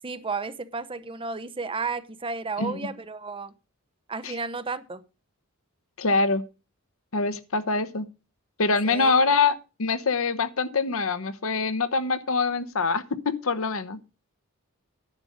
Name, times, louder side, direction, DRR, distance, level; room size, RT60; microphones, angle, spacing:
voice 1, 0.0-3.5 4.1-5.0 8.8-9.1, right 4 dB, 25° right, 0.7 m, -33 dB
voice 2, 6.0-6.4 7.1-8.1 8.6-14.0, left 4 dB, 65° left, 0.9 m, -24 dB
10.5 x 6.6 x 6.3 m
head